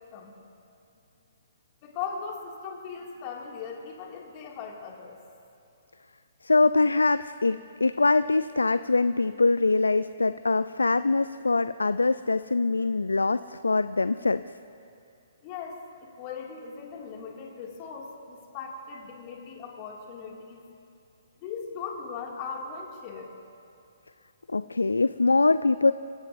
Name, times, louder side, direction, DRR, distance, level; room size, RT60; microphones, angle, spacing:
voice 1, 1.8-5.1 15.4-15.8 16.2-20.6 21.4-23.3, left 6 dB, 35° left, -1 dB, 2.3 m, -38 dB
voice 2, 6.4-14.4 24.5-25.9, left 3 dB, 80° left, 14 dB, 0.3 m, -23 dB
24.5 x 16.5 x 2.6 m, 2.6 s
figure-of-eight pair, 130°, 0 cm